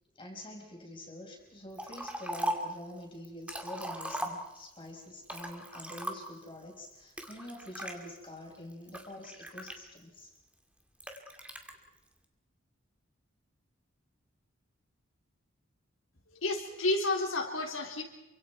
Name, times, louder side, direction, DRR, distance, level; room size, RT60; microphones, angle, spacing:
voice 1, 0.1-10.3, left 1 dB, 25° left, 0 dB, 5.4 m, -46 dB
Liquid, 1.8-2.8 3.2-4.8 5.2-6.5 7.2-7.9 8.5-10.2 11.0-11.7, right 1 dB, 5° right, 2.4 m, -38 dB
voice 2, 16.3-18.0, left 2 dB, 80° left, 1 dB, 4.1 m, -31 dB
28.5 x 25.5 x 4.7 m, 0.99 s
head